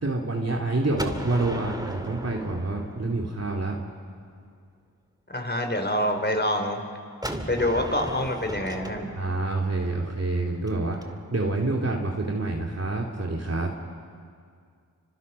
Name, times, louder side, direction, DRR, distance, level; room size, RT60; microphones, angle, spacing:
voice 1, 0.0-3.8 9.2-13.7, right 2 dB, 40° right, -1 dB, 2.8 m, -27 dB
Gunshot gunfire, 1.0-3.8 7.2-11.0, right 1 dB, 10° right, 2.5 m, -36 dB
voice 2, 5.3-6.8 7.5-9.1, left 1 dB, 30° left, 5 dB, 4.1 m, -26 dB
30.0 x 25.5 x 5.6 m, 2.2 s
cardioid pair, 40°, 37 cm